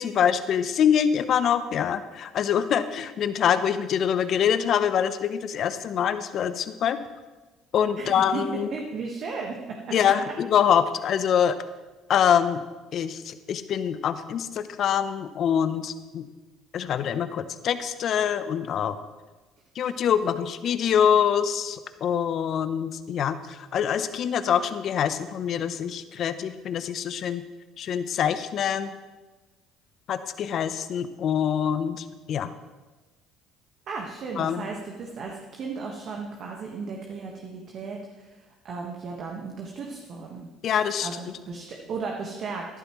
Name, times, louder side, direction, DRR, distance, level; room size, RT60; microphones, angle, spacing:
voice 1, 0.0-7.0 7.7-8.7 9.9-11.5 12.1-12.6 12.9-16.3 16.7-19.0 19.8-27.4 27.8-29.0 30.1-32.5 34.4-34.7 40.6-41.1, left 8 dB, 55° left, 12 dB, 0.7 m, -25 dB
voice 2, 8.0-8.4 8.7-9.8 10.0-10.1 19.8-19.9 33.9-38.3 38.6-40.5 41.0-42.7, right 4 dB, 55° right, 0 dB, 1.5 m, -35 dB
14.0 x 11.5 x 3.1 m, 1.2 s
hypercardioid pair, 70°, 0 cm